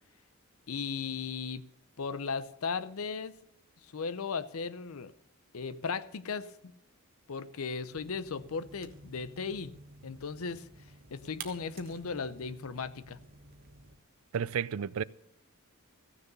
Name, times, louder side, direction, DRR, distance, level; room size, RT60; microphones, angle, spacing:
voice 1, 0.7-1.6 2.0-3.3 3.9-5.1 5.5-6.7 7.3-9.7 10.0-10.7 11.1-13.2, left 5 dB, 70° left, 0.6 m, -36 dB
sound 1, 7.9-14.0, right 4 dB, 45° right, 1.5 m, -51 dB
voice 2, 14.3-15.0, right 7 dB, 70° right, 0.4 m, -32 dB
15.0 x 6.8 x 6.7 m
head